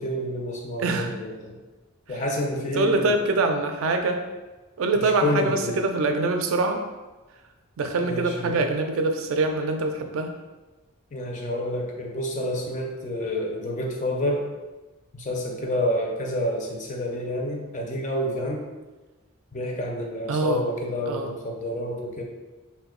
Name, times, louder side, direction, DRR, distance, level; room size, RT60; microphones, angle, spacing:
voice 1, 0.0-1.6 2.1-3.2 5.0-5.8 8.0-8.7 11.1-14.5 15.1-18.7 19.5-22.2, left 1 dB, 35° left, 1 dB, 0.4 m, -29 dB
voice 2, 0.8-1.1 2.1-2.2 2.7-4.2 4.8-6.8 7.8-10.3 20.3-20.7 21.1-21.3, right 3 dB, 70° right, 5 dB, 0.3 m, -24 dB
2.8 x 2.2 x 3.6 m, 1.2 s
head